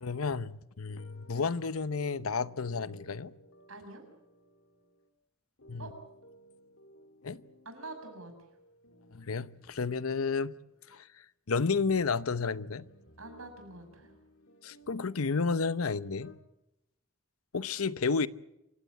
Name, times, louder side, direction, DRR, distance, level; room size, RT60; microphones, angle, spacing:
voice 1, 0.0-3.3 5.7-5.9 7.2-7.4 9.1-10.5 10.9-12.9 14.6-16.4 17.5-18.3, left 4 dB, 85° left, 0.8 m, -31 dB
sound 1, 0.9-5.1 5.6-11.2 11.8-16.4, equal, 65° left, 2.6 m, -59 dB
voice 2, 3.7-4.0 5.8-5.9 7.6-8.3 13.2-14.1, right 2 dB, 75° right, 6.8 m, -45 dB
27.5 x 16.5 x 8.4 m
head